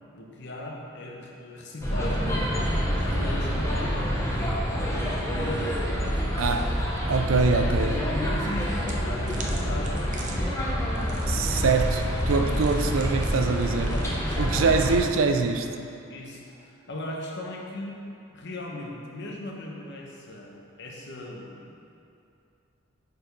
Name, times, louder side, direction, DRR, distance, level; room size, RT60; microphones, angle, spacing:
voice 1, 0.1-2.5 3.0-6.7 7.3-10.1 11.1-11.2 13.8-14.8 16.1-17.9 18.3-21.7, left 1 dB, 60° left, -1 dB, 1.0 m, -38 dB
sound 1, 1.8-15.0, equal, 15° left, 1.0 m, -27 dB
voice 2, 6.4-6.8 7.1-8.0 11.2-13.9 14.4-15.7, right 4 dB, 85° right, 6 dB, 0.5 m, -24 dB
sound 2, 8.8-15.1, right 2 dB, 40° right, 0.6 m, -41 dB
6.5 x 4.7 x 5.2 m, 2.6 s
head